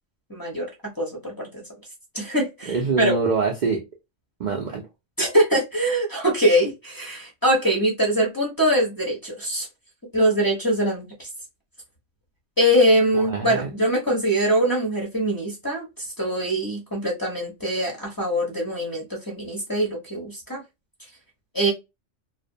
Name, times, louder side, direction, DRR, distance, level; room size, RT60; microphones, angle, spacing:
voice 1, 0.3-0.7 1.0-1.6 2.1-3.1 5.2-9.7 10.1-11.3 12.6-20.6 21.5-21.7, equal, 25° left, 0.6 m, -23 dB
voice 2, 2.7-3.8 4.4-4.8 13.1-13.7, right 4 dB, 60° right, 0.5 m, -24 dB
2.5 x 2.1 x 2.6 m
omnidirectional pair, 1.2 m